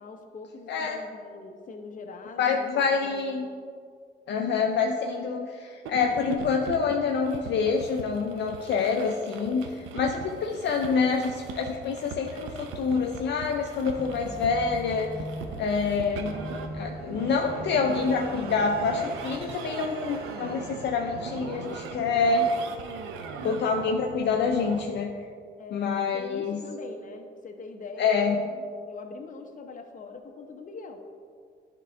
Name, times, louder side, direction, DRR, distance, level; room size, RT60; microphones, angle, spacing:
voice 1, 0.0-3.4 15.7-16.1 25.6-25.9 26.1-31.0, left 4 dB, 40° left, 4 dB, 0.9 m, -42 dB
voice 2, 0.7-1.0 2.4-3.5 4.3-15.1 15.6-16.3 16.7-22.5 23.4-25.1 25.7-26.6 28.0-28.4, left 5 dB, 60° left, 2 dB, 0.5 m, -26 dB
sound 1, 5.9-24.8, right 5 dB, 90° right, 0.6 m, -40 dB
sound 2, 10.9-21.3, right 2 dB, 50° right, 1.5 m, -49 dB
sound 3, 14.0-19.5, left 1 dB, ahead, 0.7 m, -41 dB
10.5 x 3.8 x 3.4 m, 2.1 s
cardioid pair, 90°, 20 cm